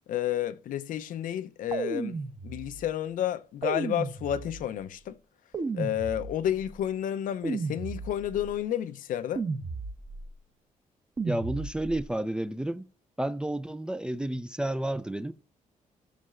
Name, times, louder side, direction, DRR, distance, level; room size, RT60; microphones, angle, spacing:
voice 1, 0.1-2.2 2.4-5.2 5.7-9.4, left 11 dB, 80° left, 0.6 m, -31 dB
sound 1, 1.7-2.9 3.6-4.8 5.5-6.7 7.4-8.5 9.4-10.3 11.2-12.1, right 4 dB, 30° right, 0.8 m, -34 dB
voice 2, 11.2-12.8 13.2-15.3, right 1 dB, 5° right, 0.3 m, -31 dB
15.5 x 6.5 x 2.4 m
cardioid pair, 140°, 14 cm